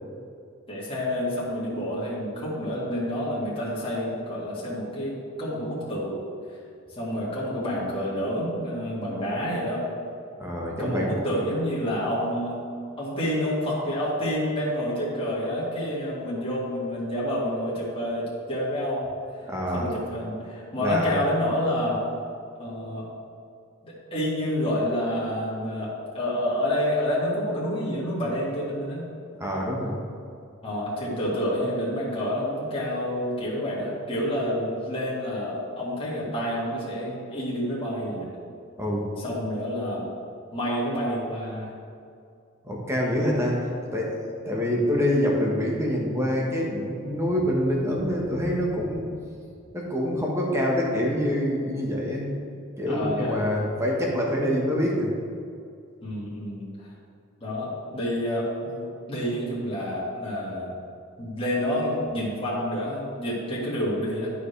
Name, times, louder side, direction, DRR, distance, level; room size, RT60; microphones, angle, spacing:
voice 1, 0.7-6.2 6.9-9.9 10.8-12.7 13.0-19.4 19.7-22.0 22.6-23.1 23.8-29.1 30.6-38.3 39.2-40.0 40.5-41.7 52.9-53.5 56.0-56.9 57.4-60.7 61.2-64.3, equal, 25° left, -8 dB, 1.9 m, -28 dB
voice 2, 10.4-11.1 19.5-19.9 20.8-21.1 29.4-30.0 38.8-39.1 42.6-43.6 43.9-44.1 44.4-49.0 49.7-52.3 52.8-55.1, equal, 15° right, -2 dB, 1.3 m, -26 dB
12.0 x 4.8 x 3.3 m, 2.4 s
head